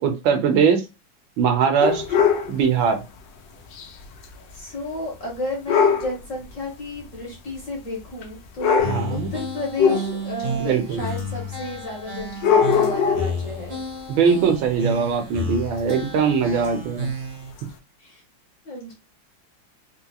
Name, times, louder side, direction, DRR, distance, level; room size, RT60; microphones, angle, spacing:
voice 1, 0.0-0.8 1.4-2.0 2.5-3.0 8.8-9.3 10.6-11.1 14.1-17.1, right 6 dB, 75° right, 5 dB, 1.5 m, -21 dB
sound 1, 1.8-2.5 3.7-3.9 4.2-4.3 5.7-6.1 7.1-7.2 8.2-8.3 8.6-9.1 9.8-10.4 11.2-11.3 12.3-13.4 15.9-16.0 16.6-16.7 17.6-17.7, left 6 dB, 70° left, 1.3 m, -20 dB
voice 2, 4.5-13.8 18.0-18.2 18.6-18.9, left 2 dB, 50° left, -1 dB, 1.2 m, -32 dB
sound 2, 8.8-17.5, equal, 40° right, 0.5 m, -31 dB
3.9 x 2.9 x 2.3 m, 0.26 s
omnidirectional pair, 2.2 m